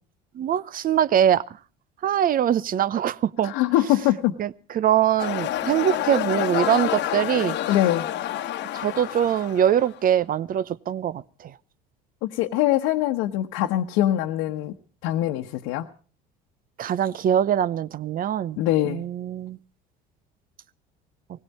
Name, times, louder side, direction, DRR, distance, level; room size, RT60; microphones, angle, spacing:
voice 1, 0.3-1.4 2.0-3.5 4.4-7.6 8.7-11.5 16.8-18.6 18.8-19.6, right 10 dB, 40° right, 0.8 m, -23 dB
voice 2, 3.4-4.4 7.7-8.1 12.2-14.7 15.0-15.9 18.6-19.0, left 14 dB, 75° left, 1.1 m, -23 dB
sound 1, 5.2-10.0, left 12 dB, 55° left, 1.2 m, -28 dB
19.5 x 16.5 x 4.2 m
supercardioid pair, 90°, 21 cm